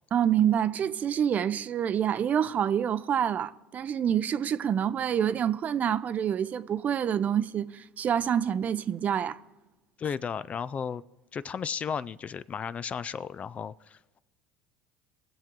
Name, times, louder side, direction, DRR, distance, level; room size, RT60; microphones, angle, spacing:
voice 1, 0.1-9.4, right 9 dB, 40° right, 0.6 m, -27 dB
voice 2, 10.0-11.0 11.3-14.2, left 7 dB, 35° left, 0.4 m, -34 dB
20.0 x 7.4 x 3.7 m
hypercardioid pair, 85°, 4 cm